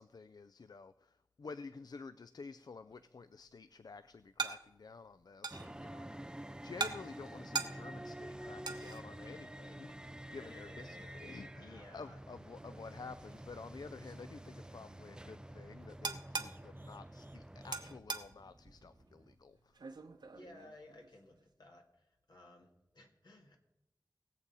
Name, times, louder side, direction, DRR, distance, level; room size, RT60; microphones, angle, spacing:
voice 1, 0.0-19.9, left 4 dB, 65° left, 0.4 m, -51 dB
sound 1, 2.9-21.4, right 4 dB, 85° right, 0.9 m, -46 dB
sound 2, 5.5-18.0, right 1 dB, 10° right, 0.4 m, -49 dB
sound 3, 8.1-19.4, right 2 dB, 30° right, 0.8 m, -63 dB
voice 2, 10.4-11.1 11.6-12.2 20.3-23.6, left 2 dB, 80° left, 2.0 m, -57 dB
20.0 x 7.4 x 4.1 m
wide cardioid pair, 60°, 7 cm